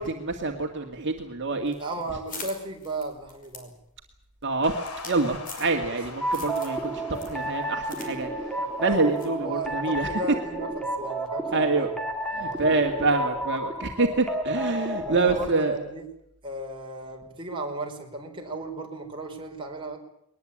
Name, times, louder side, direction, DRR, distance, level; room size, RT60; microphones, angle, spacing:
voice 1, 0.0-1.8 4.4-4.8 5.0-8.3 8.8-10.2 11.5-11.9 12.3-15.8, right 3 dB, 55° right, 2 dB, 2.2 m, -26 dB
sound 1, 1.7-6.0 6.3-6.8 7.1-8.1 8.4-8.5 9.2-9.4, left 4 dB, 40° left, 5.4 m, -43 dB
voice 2, 1.8-3.7 6.4-6.5 9.4-10.7 11.0-12.0 12.3-12.7 15.1-16.0 16.4-20.0, right 1 dB, 25° right, 1 dB, 4.7 m, -35 dB
sound 2, 4.6-11.1, left 3 dB, 80° left, 3.1 m, -44 dB
sound 3, 6.2-15.5, right 1 dB, 5° left, 2.7 m, -31 dB
21.5 x 20.5 x 8.7 m, 0.74 s
head